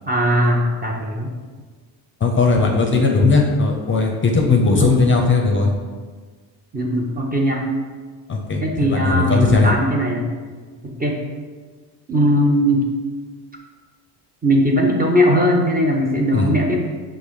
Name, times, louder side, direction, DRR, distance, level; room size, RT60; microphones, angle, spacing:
voice 1, 0.1-1.3 2.9-3.2 4.8-4.9 6.7-7.6 8.6-10.3 10.8-11.2 12.1-12.9 14.4-16.8, equal, 20° right, -1 dB, 0.5 m, -19 dB
voice 2, 2.2-5.7 8.3-9.7 16.3-16.5, left 4 dB, 25° left, 1 dB, 0.5 m, -17 dB
5.3 x 2.0 x 4.8 m, 1.5 s
cardioid pair, 105°, 46 cm